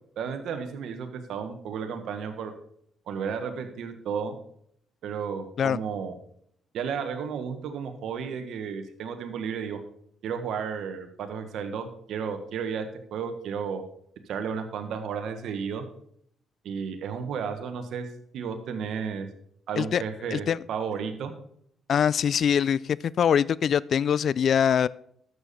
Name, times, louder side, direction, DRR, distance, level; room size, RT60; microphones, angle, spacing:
voice 1, 0.2-2.5 3.1-4.3 5.0-6.1 6.7-9.8 10.2-12.9 13.1-13.8 14.3-15.8 16.6-18.1 18.3-19.3 19.7-21.3, right 6 dB, 75° right, 7 dB, 1.3 m, -33 dB
voice 2, 21.9-24.9, left 8 dB, 60° left, 21 dB, 0.3 m, -23 dB
11.5 x 7.0 x 4.2 m, 0.68 s
cardioid pair, 90°, 0 cm